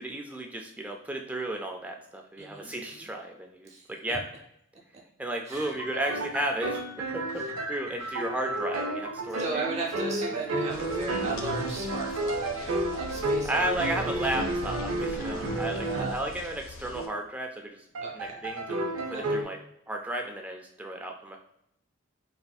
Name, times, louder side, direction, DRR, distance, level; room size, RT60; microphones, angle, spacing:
voice 1, 0.0-4.2 5.2-6.8 7.1-9.7 13.5-17.8 18.1-19.6 19.9-21.4, right 1 dB, 5° right, 2 dB, 0.3 m, -34 dB
voice 2, 2.4-3.1 3.7-3.8 5.5-5.8 7.4-7.5 8.0-8.1 9.4-14.1 15.8-16.1 18.0-18.4 19.1-19.3, right 4 dB, 30° right, -2 dB, 0.7 m, -37 dB
sound 1, 5.5-16.3 16.9-17.2 17.9-19.4, right 1 dB, 85° right, 0.5 m, -32 dB
sound 2, 10.7-17.1, left 2 dB, 75° left, 0.4 m, -43 dB
4.1 x 2.6 x 2.2 m, 0.76 s
head